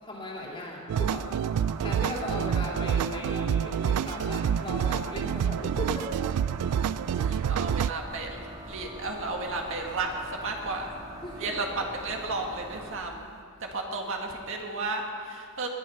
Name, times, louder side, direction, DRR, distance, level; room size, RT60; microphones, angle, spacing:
voice 1, 0.0-6.2 7.2-7.5 11.2-11.6, left 1 dB, 25° left, -3 dB, 2.8 m, -38 dB
sound 1, 0.9-7.9, right 8 dB, 90° right, 0.3 m, -28 dB
sound 2, 1.0-13.0, right 1 dB, 15° right, 1.9 m, -43 dB
voice 2, 7.1-8.4 8.7-10.9 11.4-13.3 13.6-15.7, right 3 dB, 60° right, 1 dB, 1.8 m, -33 dB
20.0 x 11.0 x 5.7 m, 2.2 s
head